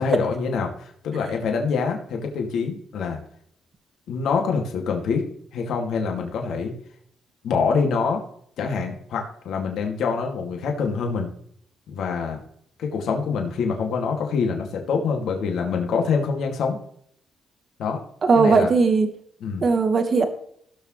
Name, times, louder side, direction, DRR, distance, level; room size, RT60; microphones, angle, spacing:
voice 1, 0.0-3.2 4.1-5.2 5.5-6.7 7.4-8.2 8.6-11.3 11.9-12.4 12.8-16.8 17.8-18.0 18.3-18.7 19.4-19.7, left 5 dB, 75° left, 2 dB, 2.3 m, -25 dB
voice 2, 18.2-19.1 19.6-20.3, right 4 dB, 45° right, 6 dB, 1.7 m, -18 dB
17.5 x 6.4 x 3.2 m, 0.64 s
cardioid pair, 90°, 0 cm